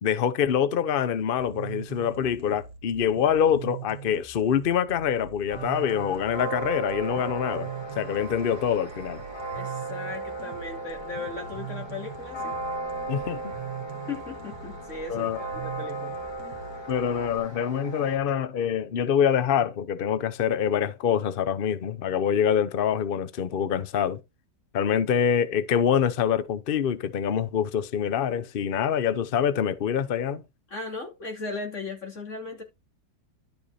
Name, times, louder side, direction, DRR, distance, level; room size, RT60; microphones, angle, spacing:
voice 1, 0.0-7.7 8.0-9.2 13.1-13.5 15.1-15.4 16.9-24.2 24.7-30.4, left 8 dB, 70° left, 0.5 m, -25 dB
sound 1, 1.4-17.4, right 8 dB, 55° right, 2.1 m, -42 dB
sound 2, 5.5-18.2, right 2 dB, 15° left, 2.5 m, -36 dB
voice 2, 9.5-12.5 14.1-16.2 30.7-32.6, left 3 dB, 40° left, 3.1 m, -37 dB
11.5 x 5.2 x 4.2 m
omnidirectional pair, 1.9 m